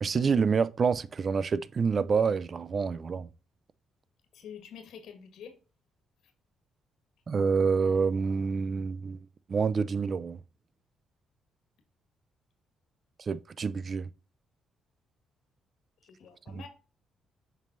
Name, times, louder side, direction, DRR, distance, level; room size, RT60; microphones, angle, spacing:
voice 1, 0.0-3.3 7.3-9.2 9.5-10.4 13.2-14.1 16.5-16.6, right 5 dB, 40° right, 0.5 m, -27 dB
voice 2, 4.3-5.6 16.0-16.7, left 7 dB, 80° left, 1.6 m, -47 dB
7.4 x 5.4 x 2.6 m
cardioid pair, 90°, 0 cm